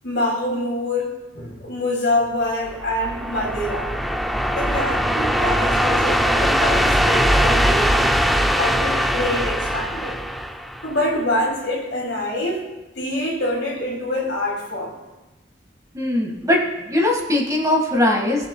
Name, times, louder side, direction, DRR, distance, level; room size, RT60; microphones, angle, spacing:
voice 1, 0.0-3.9 4.5-8.2 8.5-10.2 10.8-12.7 13.0-15.0, left 1 dB, 80° left, -1 dB, 2.7 m, -25 dB
sound 1, 2.7-11.2, equal, ahead, 0.4 m, -21 dB
voice 2, 15.9-18.5, left 1 dB, 20° right, 0 dB, 1.8 m, -20 dB
19.5 x 7.1 x 2.3 m, 1.0 s
head